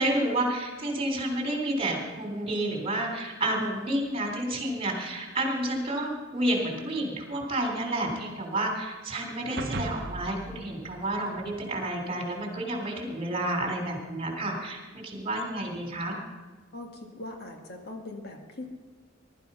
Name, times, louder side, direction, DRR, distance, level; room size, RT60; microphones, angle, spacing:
voice 1, 0.0-16.2, right 1 dB, 30° right, 2 dB, 3.6 m, -30 dB
sound 1, 9.6-12.1, right 2 dB, 55° right, 0.9 m, -38 dB
voice 2, 16.7-18.7, left 2 dB, 55° left, 2 dB, 1.9 m, -41 dB
20.5 x 12.5 x 5.6 m, 1.3 s
head